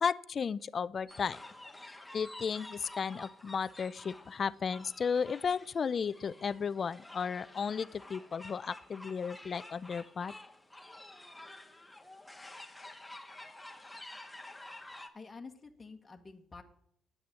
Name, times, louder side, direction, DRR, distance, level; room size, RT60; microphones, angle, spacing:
voice 1, 0.0-1.4 2.1-10.3, left 6 dB, 45° left, 18 dB, 0.5 m, -34 dB
sound 1, 1.1-15.1, left 2 dB, 10° left, 1.6 m, -50 dB
voice 2, 15.1-16.6, left 4 dB, 25° left, 3 dB, 1.4 m, -49 dB
9.5 x 8.6 x 7.4 m, 0.71 s
cardioid pair, 90°, 0 cm